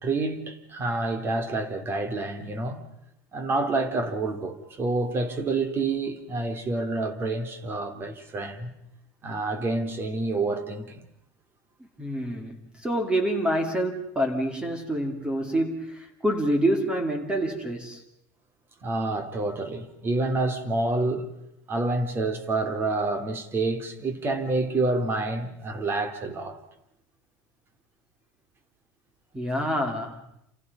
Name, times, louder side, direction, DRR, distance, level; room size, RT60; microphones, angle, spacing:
voice 1, 0.0-2.8 3.3-8.7 9.2-11.1 18.8-21.3 21.7-26.6, right 2 dB, 25° right, 2.8 m, -28 dB
voice 2, 12.0-18.0 29.3-30.2, right 1 dB, 10° right, 2.5 m, -27 dB
29.0 x 28.0 x 5.4 m
supercardioid pair, 140°, 9 cm